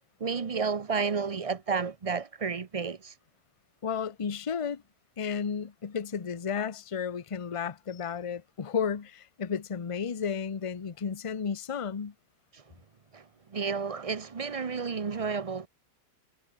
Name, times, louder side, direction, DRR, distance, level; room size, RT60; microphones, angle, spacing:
voice 1, 0.2-3.1 12.5-12.7 13.1-15.7, right 5 dB, 50° right, 0.4 m, -31 dB
voice 2, 3.8-4.8 5.2-12.1, left 6 dB, 40° left, 0.5 m, -33 dB
omnidirectional pair, 1.8 m